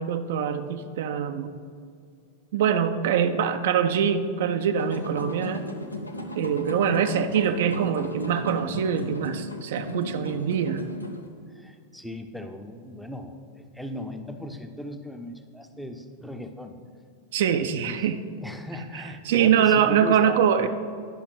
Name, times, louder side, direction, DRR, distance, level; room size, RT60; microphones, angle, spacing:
voice 1, 0.0-1.5 2.5-5.7 6.3-10.8 17.3-18.2 18.9-20.7, right 8 dB, 55° right, 8 dB, 0.4 m, -24 dB
sound 1, 4.7-11.3, left 2 dB, 85° left, 0.7 m, -36 dB
voice 2, 11.5-16.8 17.5-18.0 18.3-20.7, left 1 dB, ahead, 5 dB, 0.6 m, -38 dB
10.0 x 5.8 x 3.9 m, 2.2 s
figure-of-eight pair, 90°, 0 cm